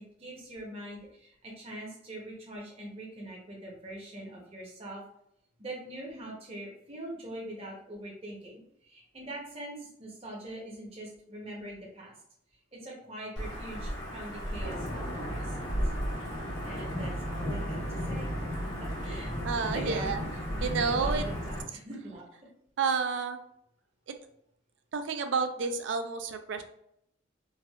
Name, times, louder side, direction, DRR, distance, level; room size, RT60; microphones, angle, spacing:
voice 1, 0.2-5.0 5.6-12.1 12.7-15.1 15.3-15.9 16.6-18.3 18.8-20.1 20.6-22.2, right 1 dB, 30° right, -3 dB, 0.7 m, -43 dB
Wind / Thunder / Rain, 13.4-21.6, equal, 70° left, 1.2 m, -34 dB
voice 2, 19.4-20.2 20.6-21.2 22.8-23.4 24.9-26.6, right 5 dB, 65° right, 8 dB, 0.3 m, -30 dB
3.2 x 2.3 x 2.3 m, 0.73 s
head